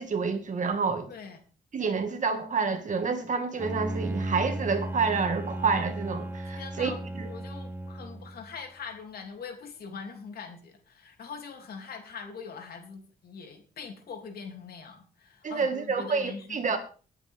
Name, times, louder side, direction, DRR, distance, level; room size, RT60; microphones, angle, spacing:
voice 1, 0.0-1.1 1.7-7.3 15.4-16.8, right 5 dB, 50° right, 2.3 m, -28 dB
Bowed string instrument, 3.6-8.5, right 1 dB, 15° right, 0.9 m, -35 dB
voice 2, 6.5-7.0 7.2-16.8, left 5 dB, 70° left, 3.3 m, -42 dB
21.0 x 8.2 x 3.8 m
cardioid pair, 95°, 16 cm